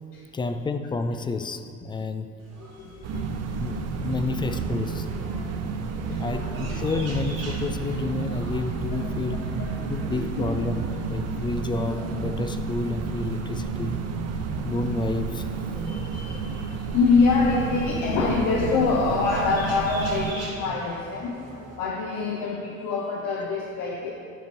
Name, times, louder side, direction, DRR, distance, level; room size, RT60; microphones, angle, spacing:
voice 1, 0.3-2.3 3.6-5.1 6.2-9.4 9.9-14.0 14.6-15.5 17.5-17.6, left 3 dB, 15° left, 8 dB, 0.3 m, -30 dB
sound 1, 2.4-21.8, right 1 dB, 80° right, 1.6 m, -44 dB
voice 2, 2.6-3.3 4.1-4.2 5.8-6.3 9.6-9.7 14.4-14.7 15.7-21.4 21.8-24.1, left 4 dB, 55° left, -2 dB, 1.0 m, -25 dB
sound 2, 3.0-20.3, right 5 dB, 40° right, 0.7 m, -31 dB
7.7 x 5.2 x 6.6 m, 2.4 s
figure-of-eight pair, 55°, 40 cm